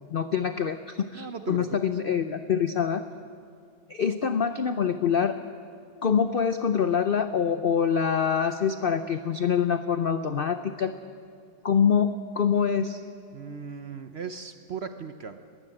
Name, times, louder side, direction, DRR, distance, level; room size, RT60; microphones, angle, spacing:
voice 1, 0.1-3.0 3.9-5.4 6.0-10.9 11.6-13.0, left 7 dB, 65° left, 10 dB, 0.5 m, -25 dB
voice 2, 1.1-1.8 13.3-15.5, right 6 dB, 55° right, 9 dB, 0.8 m, -37 dB
21.0 x 14.5 x 9.0 m, 2.2 s
omnidirectional pair, 1.8 m